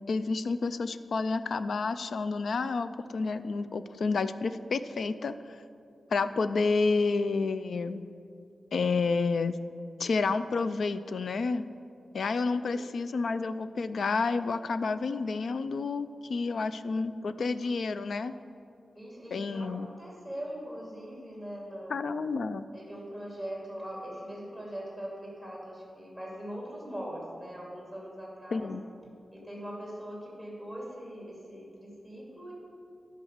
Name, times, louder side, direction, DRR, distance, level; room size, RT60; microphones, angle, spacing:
voice 1, 0.1-5.6 6.1-8.0 8.7-9.6 10.0-11.6 12.1-18.3 19.3-19.9 21.9-22.7 28.5-28.8, left 4 dB, 70° left, 12 dB, 0.4 m, -30 dB
voice 2, 12.6-12.9 16.5-16.7 18.9-22.0 22.7-28.7 29.3-32.5, equal, 10° left, -3 dB, 2.5 m, -41 dB
10.5 x 5.4 x 6.5 m, 2.4 s
wide cardioid pair, 160°, 0 cm